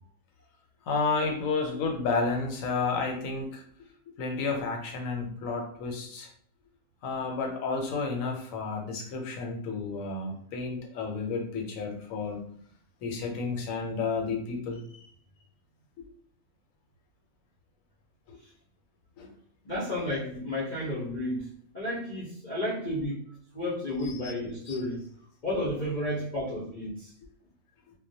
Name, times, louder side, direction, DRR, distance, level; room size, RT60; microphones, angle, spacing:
voice 1, 0.9-3.6 4.2-6.3 7.0-12.4 13.0-15.1 16.0-16.1 18.3-18.4 19.2-19.3 24.0-24.4 24.7-24.8, left 4 dB, 75° left, 2 dB, 1.0 m, -31 dB
voice 2, 19.6-23.2 23.5-25.0 25.4-27.1, left 1 dB, 50° left, -8 dB, 0.5 m, -32 dB
2.3 x 2.1 x 2.7 m, 0.62 s
omnidirectional pair, 1.5 m